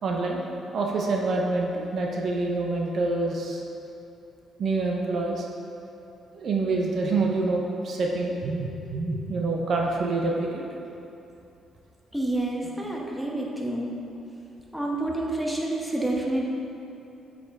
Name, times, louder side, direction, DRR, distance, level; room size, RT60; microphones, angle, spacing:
voice 1, 0.0-0.4 0.7-3.6 4.6-5.5 6.3-10.6, right 3 dB, 60° right, -1 dB, 0.7 m, -26 dB
voice 2, 12.1-13.9 14.7-16.4, right 1 dB, ahead, -3 dB, 1.1 m, -28 dB
7.8 x 5.0 x 3.6 m, 2.8 s
cardioid pair, 90°, 0 cm